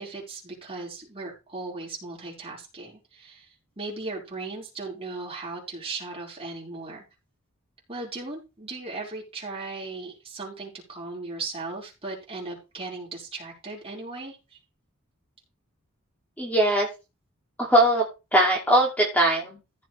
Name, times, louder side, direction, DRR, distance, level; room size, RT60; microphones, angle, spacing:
voice 1, 0.0-7.0 7.9-14.4, right 3 dB, 25° right, -2 dB, 5.0 m, -37 dB
voice 2, 16.4-16.9 17.6-18.0 18.3-19.8, right 1 dB, 5° left, -1 dB, 2.7 m, -21 dB
15.0 x 7.5 x 3.4 m, 0.28 s
head